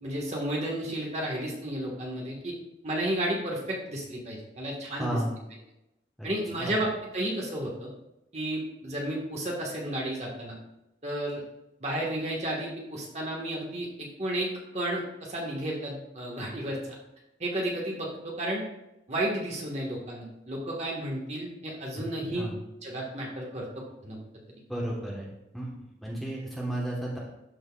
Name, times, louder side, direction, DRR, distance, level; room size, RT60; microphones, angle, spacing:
voice 1, 0.0-2.5 2.8-5.2 6.2-7.9 8.3-10.6 11.0-11.4 11.8-16.9 17.4-18.6 19.1-22.5 22.8-24.2, right 1 dB, 35° right, -2 dB, 1.4 m, -32 dB
voice 2, 5.0-5.4 6.2-6.3 6.6-6.8 22.3-22.6 24.7-25.8 26.0-27.2, right 1 dB, ahead, -5 dB, 1.2 m, -33 dB
12.5 x 4.5 x 2.3 m, 0.90 s
head